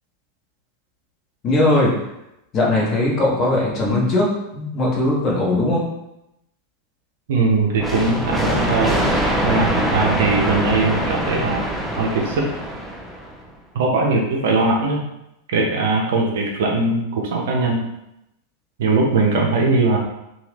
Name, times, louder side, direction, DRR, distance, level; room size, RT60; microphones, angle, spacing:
voice 1, 1.4-1.9 2.5-4.3 4.5-5.8, left 2 dB, 30° left, -3 dB, 0.9 m, -19 dB
voice 2, 7.3-9.0 9.4-12.5 13.7-15.0 15.5-17.8 18.8-20.0, right 3 dB, 55° right, 0 dB, 0.6 m, -20 dB
sound 1, 7.8-13.4, equal, 5° right, 0.5 m, -23 dB
2.7 x 2.4 x 3.3 m, 0.86 s
figure-of-eight pair, 90°, 0 cm